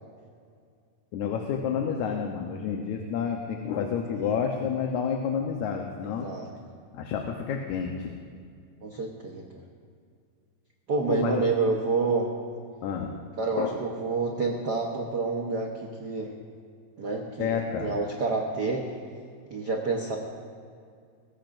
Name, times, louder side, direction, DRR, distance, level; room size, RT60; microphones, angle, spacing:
voice 1, 1.1-6.3 6.9-8.1 11.1-11.4 12.8-13.1 13.4-13.8 17.4-17.9, left 7 dB, 75° left, 2 dB, 2.2 m, -29 dB
voice 2, 8.8-9.6 10.9-12.3 13.4-16.3 17.0-18.9 19.5-20.2, right 4 dB, 90° right, 0 dB, 0.9 m, -28 dB
21.0 x 17.0 x 2.6 m, 2.2 s
omnidirectional pair, 3.6 m